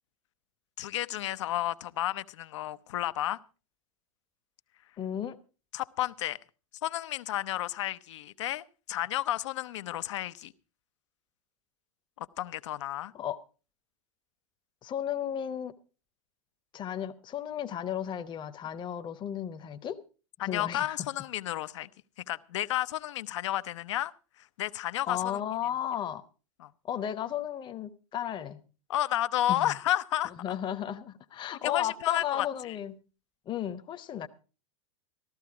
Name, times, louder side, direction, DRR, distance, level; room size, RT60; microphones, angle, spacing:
voice 1, 0.8-3.4 5.7-6.4 6.8-10.5 12.2-13.1 20.4-21.9 22.3-24.1 24.4-25.4 26.6-26.7 28.9-30.3 31.6-32.5, left 13 dB, 65° left, 0.7 m, -31 dB
voice 2, 5.0-5.4 13.1-13.4 14.8-15.7 16.7-20.0 20.4-21.1 25.1-26.2 26.8-28.6 29.5-29.7 30.2-33.0 33.5-34.3, left 10 dB, 30° left, 0.9 m, -34 dB
14.5 x 13.5 x 4.7 m
figure-of-eight pair, 90°, 17 cm